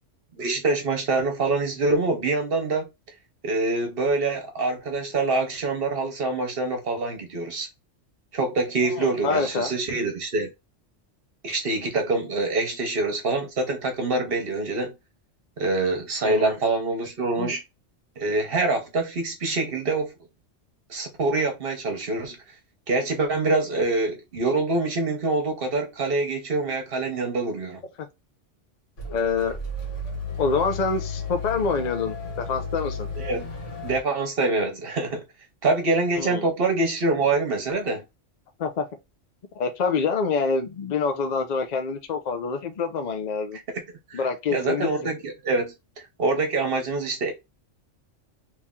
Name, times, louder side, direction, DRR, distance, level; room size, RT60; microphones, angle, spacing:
voice 1, 0.4-2.9 3.4-7.7 8.3-10.5 11.4-14.9 15.6-17.6 18.2-20.1 20.9-22.4 22.9-27.8 33.2-33.5 33.8-35.2 35.6-38.0 44.1-45.7 46.2-47.3, right 3 dB, 50° right, 1.1 m, -25 dB
voice 2, 8.9-9.7 16.2-16.5 17.4-17.6 29.1-29.6 30.4-33.1 36.2-36.5 38.6-38.9 39.6-43.6 44.1-45.1, left 4 dB, 45° left, 0.6 m, -26 dB
sound 1, 29.0-34.0, left 3 dB, 70° left, 1.5 m, -33 dB
3.1 x 2.7 x 3.6 m
omnidirectional pair, 1.3 m